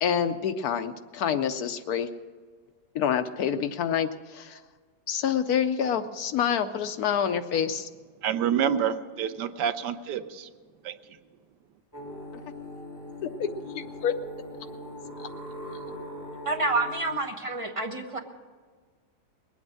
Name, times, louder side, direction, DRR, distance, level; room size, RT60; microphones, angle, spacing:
voice 1, 0.0-2.1 2.9-4.6 5.1-7.9 13.2-13.5 13.7-14.1 15.2-15.3, left 8 dB, 70° left, 9 dB, 1.1 m, -27 dB
voice 2, 8.2-10.5 10.8-10.9, right 8 dB, 80° right, 11 dB, 1.3 m, -27 dB
sound 1, 11.9-17.1, left 1 dB, 10° left, 2.7 m, -40 dB
voice 3, 16.4-18.2, right 2 dB, 20° right, 3 dB, 1.0 m, -28 dB
21.0 x 8.7 x 6.3 m, 1.5 s
omnidirectional pair, 1.8 m